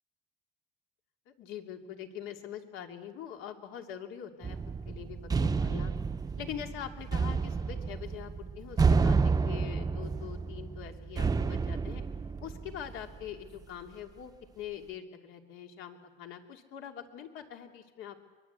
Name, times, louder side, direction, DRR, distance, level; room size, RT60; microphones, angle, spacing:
voice 1, 1.3-4.6 4.8-5.9 6.4-12.0 12.4-18.2, left 9 dB, 75° left, 3 dB, 3.0 m, -43 dB
sound 1, 4.4-13.1, right 4 dB, 20° right, 0.8 m, -30 dB
24.0 x 22.0 x 8.3 m, 1.3 s
cardioid pair, 135°, 21 cm